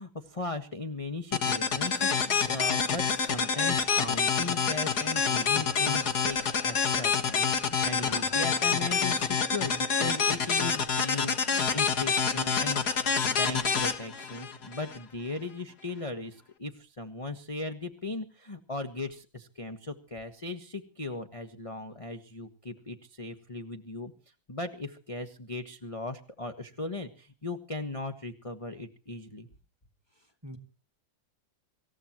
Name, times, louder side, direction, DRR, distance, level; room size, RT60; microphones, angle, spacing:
voice 1, 0.0-12.9 13.2-24.1 24.5-29.5, left 2 dB, 20° left, 6 dB, 1.4 m, -38 dB
sound 1, 1.3-15.0, left 6 dB, 55° left, 2.2 m, -27 dB
voice 2, 7.9-8.3 30.4-30.6, equal, 15° right, 7 dB, 2.2 m, -44 dB
26.0 x 15.5 x 3.1 m, 0.38 s
omnidirectional pair, 2.1 m